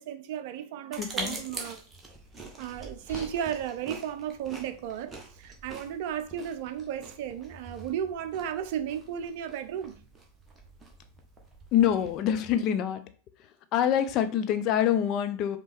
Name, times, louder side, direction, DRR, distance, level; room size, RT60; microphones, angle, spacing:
voice 1, 0.0-1.8 2.6-10.0, right 9 dB, 50° right, 0.5 m, -34 dB
sound 1, 0.9-12.2, right 3 dB, 15° right, 1.1 m, -44 dB
voice 2, 1.0-1.4 11.7-13.0 13.4-15.6, left 10 dB, 40° left, 0.5 m, -26 dB
sound 2, 2.9-7.9, left 1 dB, 85° left, 1.8 m, -56 dB
5.2 x 3.0 x 3.4 m
figure-of-eight pair, 90°, 0 cm